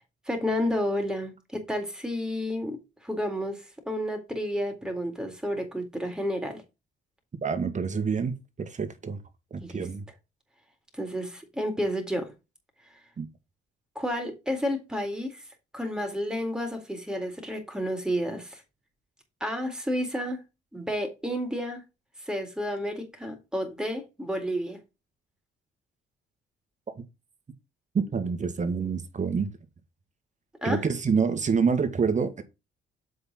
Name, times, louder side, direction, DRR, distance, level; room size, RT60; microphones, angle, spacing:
voice 1, 0.3-2.8 3.0-6.6 9.6-9.9 10.9-12.3 14.0-15.4 15.7-18.6 19.4-20.4 20.7-21.8 22.2-24.8 30.6-30.9, equal, 5° right, 3.9 m, -31 dB
voice 2, 7.4-9.2 9.5-10.1 13.2-13.3 27.0-27.1 27.9-29.5 30.6-32.4, right 5 dB, 35° right, 2.0 m, -27 dB
7.7 x 5.5 x 4.4 m
cardioid pair, 90°, 20 cm